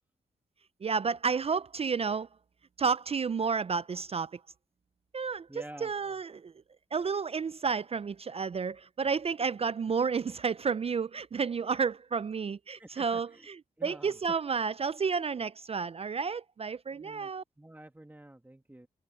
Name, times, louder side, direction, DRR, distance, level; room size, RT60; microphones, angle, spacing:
voice 1, 0.8-2.3 2.8-4.4 5.1-5.5 5.8-6.5 6.9-17.4, right 5 dB, 35° right, 0.4 m, -31 dB
voice 2, 5.5-5.9 12.8-13.5 13.8-14.2 16.9-17.3 17.6-18.9, right 1 dB, 10° right, 2.2 m, -49 dB
cardioid pair, 60°, 17 cm